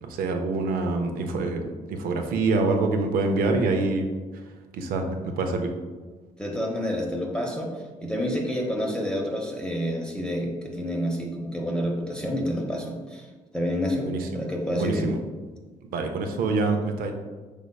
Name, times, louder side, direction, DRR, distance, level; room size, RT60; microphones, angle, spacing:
voice 1, 0.0-4.1 4.7-5.7 14.0-14.4 14.7-15.2 15.8-17.1, right 3 dB, 75° right, 4 dB, 0.6 m, -26 dB
voice 2, 6.4-7.7 8.0-13.3 13.5-15.1, equal, 5° left, 0 dB, 0.7 m, -28 dB
5.2 x 3.4 x 2.3 m, 1.3 s
supercardioid pair, 70°, 15 cm